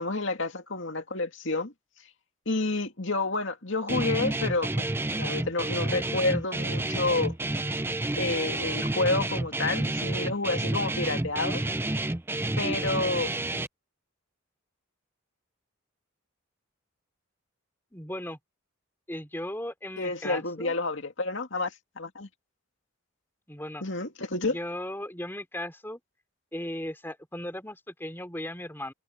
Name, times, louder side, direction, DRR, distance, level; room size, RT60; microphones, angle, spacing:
voice 1, 0.0-1.7 2.5-7.4 8.2-11.6 12.6-13.3 20.0-22.3 23.8-24.6, left 3 dB, 60° left, 2.5 m, -29 dB
Guitar, 3.9-13.7, right 2 dB, 10° right, 0.4 m, -30 dB
voice 2, 17.9-18.4 19.1-20.8 23.5-23.8 24.4-26.0 26.5-28.9, left 1 dB, 10° left, 3.6 m, -37 dB
head